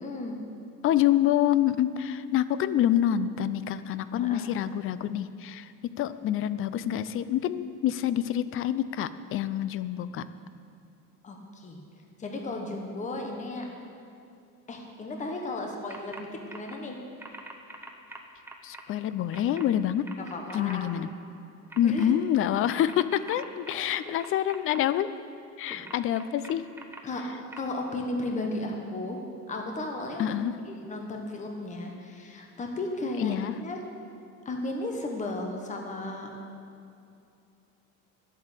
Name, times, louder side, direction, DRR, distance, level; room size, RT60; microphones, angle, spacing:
voice 1, 0.0-0.4 4.2-4.4 11.2-11.8 12.2-13.7 14.7-17.0 20.2-20.9 21.8-22.2 23.7-24.1 25.7-25.8 27.0-27.2 27.6-29.2 29.5-30.4 30.7-33.8 34.4-36.3, left 2 dB, 20° left, 2 dB, 1.3 m, -35 dB
voice 2, 0.8-5.7 6.0-10.2 18.6-20.1 20.5-21.1 21.8-25.1 25.6-26.6 30.2-30.5 33.2-33.5, left 11 dB, 40° left, 14 dB, 0.5 m, -27 dB
sound 1, 15.9-16.2 16.5-16.8 17.2-18.8 19.3-19.6 20.0-20.8 21.7-22.0 22.7-24.8 25.7-27.0 27.5-27.6, right 2 dB, 5° right, 0.8 m, -43 dB
11.0 x 8.4 x 8.1 m, 2.6 s
cardioid pair, 160°, 33 cm